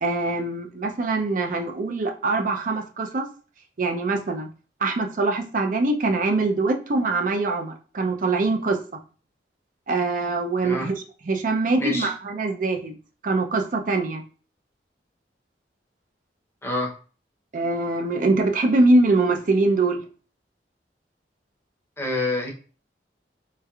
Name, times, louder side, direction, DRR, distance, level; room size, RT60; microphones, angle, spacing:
voice 1, 0.0-3.2 3.8-4.5 4.8-8.8 9.9-12.9 13.2-14.2 17.5-20.0, right 2 dB, 50° right, 4 dB, 0.5 m, -23 dB
voice 2, 11.8-12.1 16.6-17.0 22.0-22.5, left 2 dB, 15° left, 0 dB, 0.7 m, -27 dB
3.2 x 3.1 x 2.3 m, 0.38 s
head